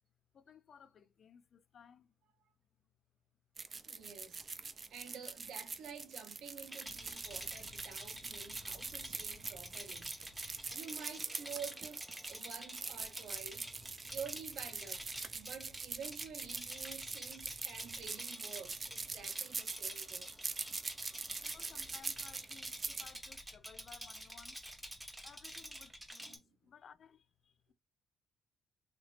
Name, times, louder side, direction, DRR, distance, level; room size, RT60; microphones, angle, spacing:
voice 1, 0.3-2.1 4.7-4.9 17.6-17.7 21.1-24.6 25.2-27.7, left 7 dB, 55° left, 0.4 m, -60 dB
sound 1, 3.6-23.1, right 4 dB, 35° right, 0.4 m, -43 dB
voice 2, 3.8-4.4 4.9-10.1 10.4-13.7 14.1-15.0 15.3-20.3 26.2-26.6, right 7 dB, 80° right, 0.7 m, -50 dB
Rattle, 6.7-26.4, right 1 dB, 5° right, 0.9 m, -48 dB
sound 2, 6.8-26.1, left 2 dB, 10° left, 1.4 m, -62 dB
3.3 x 2.9 x 2.4 m
cardioid pair, 90°, 0 cm